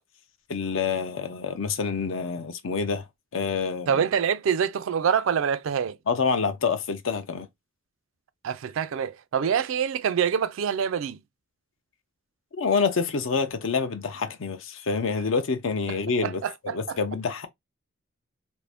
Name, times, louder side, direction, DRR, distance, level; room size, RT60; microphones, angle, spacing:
voice 1, 0.5-3.0 3.3-4.0 6.1-7.5 12.5-17.5, left 5 dB, 70° left, 0.5 m, -27 dB
voice 2, 3.9-6.0 8.4-11.2 16.2-17.0, right 7 dB, 75° right, 0.4 m, -25 dB
2.6 x 2.4 x 3.4 m
head